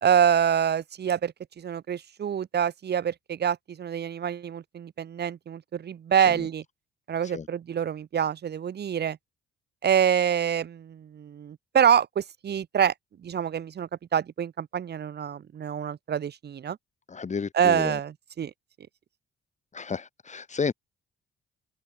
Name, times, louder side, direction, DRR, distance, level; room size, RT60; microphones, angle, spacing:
voice 1, 0.0-6.6 7.1-9.2 9.8-12.9 13.2-16.8 17.5-18.5, right 8 dB, 55° right, 3.2 m, -26 dB
voice 2, 17.1-18.0 19.7-20.7, left 5 dB, 35° left, 4.2 m, -32 dB
cardioid pair, 90°, 20 cm